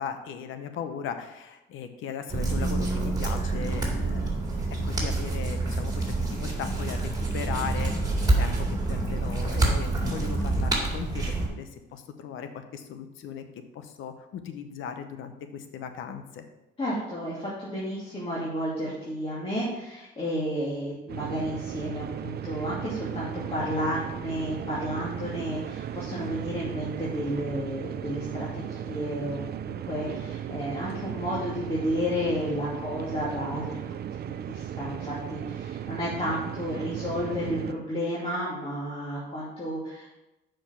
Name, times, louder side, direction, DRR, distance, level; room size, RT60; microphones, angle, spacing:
voice 1, 0.0-4.4 4.8-13.4 13.7-16.4, left 7 dB, 85° left, 8 dB, 0.9 m, -38 dB
sound 1, 2.3-11.5, right 2 dB, 20° right, 2.3 m, -27 dB
voice 2, 16.8-40.1, equal, 30° left, -7 dB, 2.4 m, -32 dB
sound 2, 21.1-37.7, right 10 dB, 55° right, 0.5 m, -36 dB
6.8 x 5.1 x 5.9 m, 0.97 s
cardioid pair, 90°, 20 cm